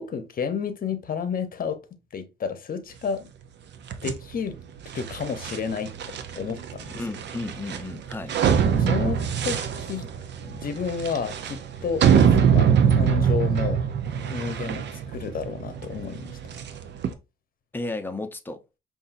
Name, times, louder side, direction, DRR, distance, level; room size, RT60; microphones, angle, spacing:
voice 1, 0.0-1.8 2.1-3.3 4.0-4.6 4.9-7.0 8.7-10.1 10.4-12.3 12.5-13.8 14.3-16.4, left 6 dB, 45° left, 0.9 m, -31 dB
sound 1, 3.9-17.1, right 7 dB, 60° right, 0.6 m, -24 dB
voice 2, 6.9-8.3 17.7-18.6, left 2 dB, 10° left, 0.7 m, -33 dB
5.4 x 2.6 x 2.6 m
cardioid pair, 90°, 20 cm